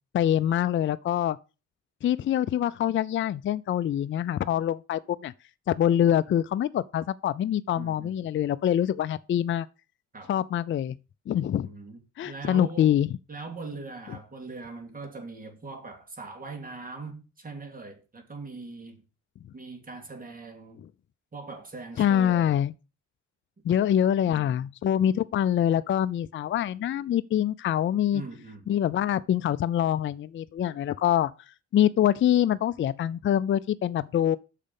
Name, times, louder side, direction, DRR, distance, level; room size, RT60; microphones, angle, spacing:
voice 1, 0.1-1.4 2.0-5.3 5.7-9.7 10.3-10.9 11.3-11.7 12.2-13.1 22.0-22.7 23.7-28.2 28.7-31.3 31.7-34.4, left 10 dB, 40° left, 0.4 m, -25 dB
voice 2, 7.8-8.3 10.1-10.3 11.6-12.0 12.3-13.0 13.3-19.0 19.5-20.8 21.3-22.5 24.3-24.6 28.1-28.7, right 3 dB, 30° right, 2.7 m, -41 dB
6.5 x 5.0 x 6.9 m
cardioid pair, 90°, 30 cm